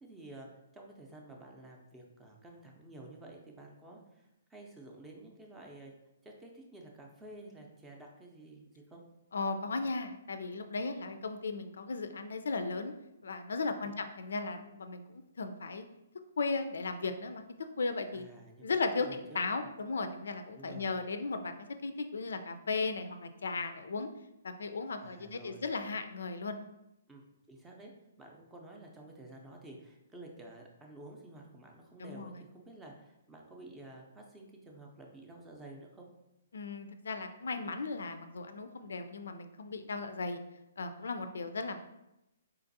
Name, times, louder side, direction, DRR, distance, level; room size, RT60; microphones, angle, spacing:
voice 1, 0.0-0.5 0.7-6.0 6.2-9.0 13.8-13.9 18.1-19.7 20.5-20.9 25.0-25.7 27.1-27.9 28.2-36.1, right 2 dB, 10° right, 0 dB, 0.5 m, -51 dB
voice 2, 9.3-12.9 13.2-15.8 16.4-17.4 17.8-18.2 18.6-21.5 21.8-24.1 24.4-26.6 32.0-32.3 36.5-40.4 40.8-41.8, left 3 dB, 80° left, 8 dB, 0.3 m, -36 dB
3.8 x 2.5 x 2.6 m, 0.90 s
hypercardioid pair, 150°, 0 cm